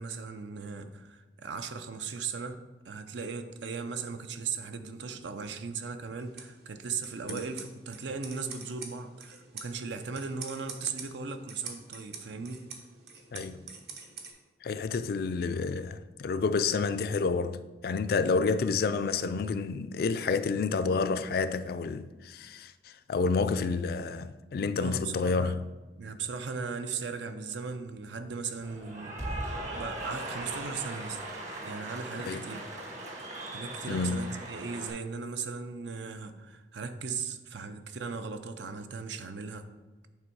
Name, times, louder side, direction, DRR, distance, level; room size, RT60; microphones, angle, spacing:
voice 1, 0.0-12.7 24.8-25.6 25.9-29.3 29.7-31.2 31.6-32.7 33.5-39.7, right 5 dB, 80° right, 0.6 m, -37 dB
sound 1, 6.2-14.3, right 5 dB, 65° right, 1.0 m, -46 dB
voice 2, 14.6-22.7 23.1-25.6 32.3-32.5 33.9-34.3, left 4 dB, 55° left, 0.3 m, -29 dB
Cheering / Applause, 28.6-34.9, right 1 dB, 40° right, 1.2 m, -39 dB
8.7 x 3.5 x 4.6 m
head